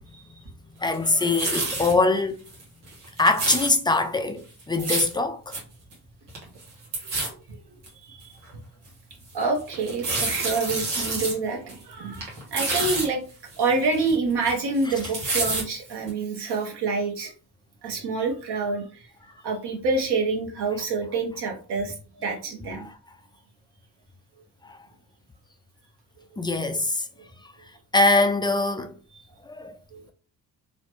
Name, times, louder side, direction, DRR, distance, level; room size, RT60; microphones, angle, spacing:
voice 1, 0.8-2.4 3.2-5.5 24.6-24.8 26.4-27.1 27.9-28.9 29.5-29.8, left 2 dB, 10° left, 0.3 m, -23 dB
sound 1, 0.9-1.9 2.5-2.6 2.9-3.7 4.6-5.1 5.5-5.6 5.9-6.0 6.3-6.6 6.9-7.3 7.8-7.9 8.5-8.6 9.7-11.3 11.7-11.8 12.1-13.1 13.5-14.5 14.8-15.6 16.1-16.2, right 3 dB, 85° right, 1.1 m, -28 dB
voice 2, 7.9-8.4 9.3-13.2 13.6-17.3 17.8-19.1 19.4-22.8 26.3-26.4 27.2-27.3 29.1-29.2 29.9-30.0, right 3 dB, 55° right, 1.1 m, -27 dB
3.1 x 2.1 x 3.0 m
hypercardioid pair, 45°, 48 cm